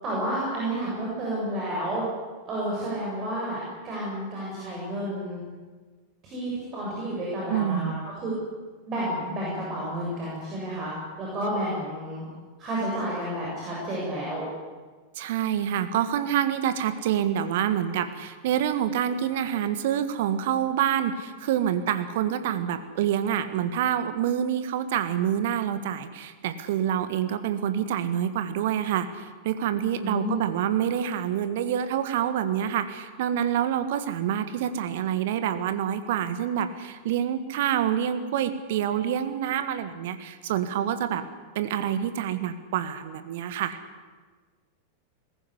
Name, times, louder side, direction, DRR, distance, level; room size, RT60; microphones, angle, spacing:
voice 1, 0.0-2.0 2.5-5.4 6.2-8.3 8.9-12.3 12.6-14.4 30.0-30.4, right 1 dB, 30° right, -5 dB, 7.4 m, -31 dB
voice 2, 7.5-8.1 15.1-41.2 41.5-43.8, right 10 dB, 55° right, 11 dB, 1.6 m, -27 dB
20.5 x 15.5 x 9.9 m, 1.4 s
figure-of-eight pair, 90°, 0 cm